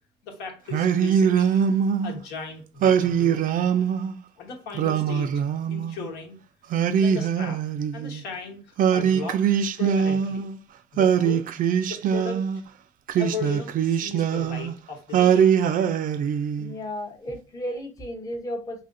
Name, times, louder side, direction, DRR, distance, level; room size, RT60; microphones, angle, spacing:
voice 1, 0.2-1.6 2.0-3.4 4.4-5.4 5.7-6.4 6.7-7.6 7.9-9.4 9.8-10.4 10.9-11.5 11.9-12.5 13.1-15.5, left 4 dB, 80° left, 1 dB, 1.2 m, -36 dB
Singing, 0.7-2.2 2.8-4.1 4.7-6.1 6.7-8.2 8.8-10.6 11.0-12.6 13.1-14.7 15.1-16.7, right 8 dB, 55° right, 0.4 m, -22 dB
voice 2, 16.6-18.8, equal, 20° left, 3 dB, 0.7 m, -34 dB
4.1 x 2.7 x 2.5 m, 0.33 s
cardioid pair, 110°, 17 cm